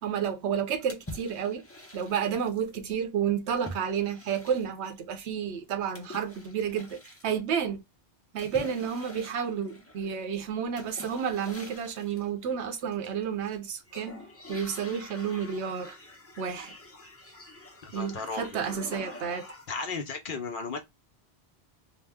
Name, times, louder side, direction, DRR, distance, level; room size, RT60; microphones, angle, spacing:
voice 1, 0.0-1.6 1.9-7.8 8.3-14.2 14.5-16.0 16.4-16.7 17.9-19.5, right 7 dB, 80° right, 0.9 m, -31 dB
sound 1, 0.9-2.7 3.6-4.9 5.9-7.3 8.4-10.1 10.8-12.3 12.9-13.6 13.9-19.9, left 1 dB, 20° left, 0.5 m, -46 dB
voice 2, 17.8-18.5 19.7-20.8, left 4 dB, 55° left, 0.7 m, -34 dB
2.9 x 2.0 x 3.3 m
omnidirectional pair, 1.1 m